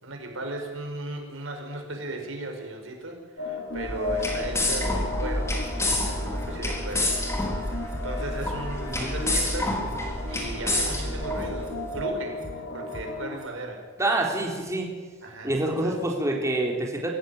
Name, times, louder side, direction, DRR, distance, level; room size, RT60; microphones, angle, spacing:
voice 1, 0.0-7.2 7.6-9.9 10.3-13.9 15.2-16.0, right 2 dB, 80° right, 3 dB, 5.3 m, -36 dB
sound 1, 3.4-13.4, left 2 dB, 75° left, 3.7 m, -36 dB
sound 2, 3.8-11.9, left 1 dB, 15° left, 4.0 m, -29 dB
sound 3, 5.4-6.0 6.4-6.5 6.9-7.0 7.4-8.0 8.4-8.5 8.9-9.0 9.4-10.0 10.4-10.5 10.9-11.0 11.4-12.0 12.4-12.5 12.9-13.0 13.4-13.5, equal, 40° right, 5.0 m, -41 dB
voice 2, 14.0-14.9 15.4-17.1, right 2 dB, 15° right, -1 dB, 3.7 m, -26 dB
24.0 x 15.0 x 9.4 m, 1.4 s
head